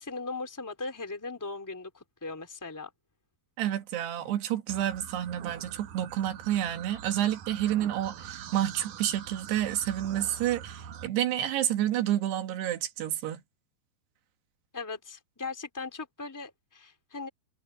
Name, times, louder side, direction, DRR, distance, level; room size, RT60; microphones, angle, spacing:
voice 1, 0.0-2.9 14.7-17.3, left 3 dB, 5° left, 2.8 m, -38 dB
voice 2, 3.6-13.4, right 12 dB, 85° right, 3.8 m, -29 dB
sound 1, 4.7-11.1, right 9 dB, 60° right, 2.4 m, -44 dB
omnidirectional pair, 4.6 m